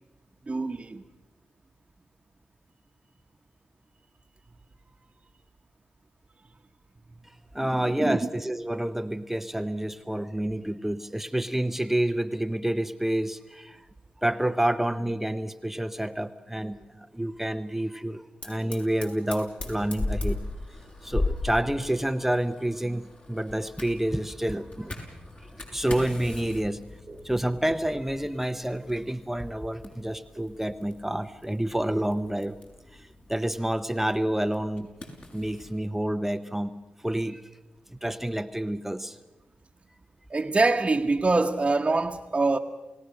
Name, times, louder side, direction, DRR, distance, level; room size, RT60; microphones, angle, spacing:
voice 1, 0.5-1.0 7.6-8.3 27.1-27.3 40.3-42.6, right 3 dB, 30° right, 1.1 m, -25 dB
voice 2, 7.5-13.9 14.2-20.4 21.0-24.9 25.4-26.8 27.2-32.6 32.9-34.9 35.3-36.7 37.0-37.5 37.9-39.2, right 1 dB, 10° right, 0.8 m, -29 dB
Fire, 18.4-35.8, left 2 dB, 45° left, 6.2 m, -38 dB
28.5 x 17.5 x 6.5 m
cardioid pair, 60°, 3 cm